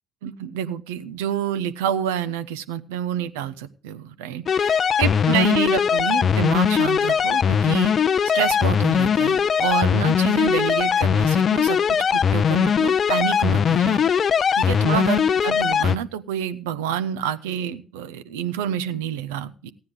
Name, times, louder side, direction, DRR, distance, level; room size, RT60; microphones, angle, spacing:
voice 1, 0.2-7.9 8.3-11.8 12.1-14.0 14.6-19.7, right 9 dB, 85° right, 12 dB, 0.5 m, -28 dB
sound 1, 4.5-16.0, left 7 dB, 50° left, 0.5 m, -20 dB
16.0 x 9.5 x 3.7 m, 0.42 s
hypercardioid pair, 50°, 0 cm